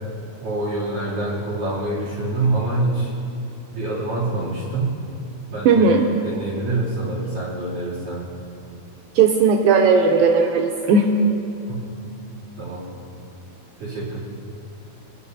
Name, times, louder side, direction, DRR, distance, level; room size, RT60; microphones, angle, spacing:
voice 1, 0.4-3.1 3.7-5.0 5.5-5.8 6.2-8.2 11.7-11.9 12.6-12.9 13.8-14.2, right 2 dB, 55° right, -8 dB, 4.4 m, -25 dB
voice 2, 5.7-6.1 9.2-11.1, right 5 dB, 90° right, 3 dB, 2.0 m, -16 dB
25.0 x 11.0 x 2.8 m, 2.7 s
omnidirectional pair, 4.8 m